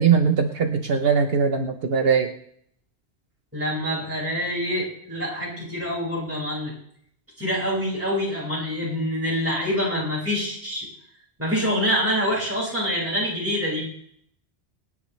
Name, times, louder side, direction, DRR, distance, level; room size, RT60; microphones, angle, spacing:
voice 1, 0.0-2.3, right 6 dB, 60° right, 6 dB, 1.1 m, -20 dB
voice 2, 3.5-6.7 7.4-10.9 11.4-13.9, equal, 10° right, -5 dB, 5.4 m, -26 dB
25.5 x 10.0 x 3.2 m, 0.66 s
omnidirectional pair, 1.1 m